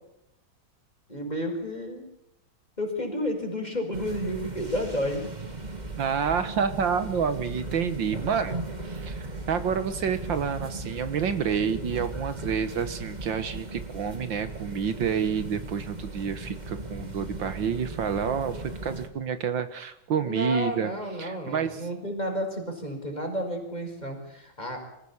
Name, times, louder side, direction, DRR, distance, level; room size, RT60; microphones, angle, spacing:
voice 1, 1.1-2.1 2.8-5.2 20.2-24.8, equal, 20° left, 2 dB, 5.7 m, -31 dB
sound 1, 3.9-19.1, right 2 dB, 20° right, 2.2 m, -37 dB
voice 2, 6.0-8.6 8.8-20.9 21.2-21.8, right 7 dB, 70° right, 11 dB, 1.9 m, -29 dB
26.0 x 15.5 x 8.7 m, 0.81 s
omnidirectional pair, 2.2 m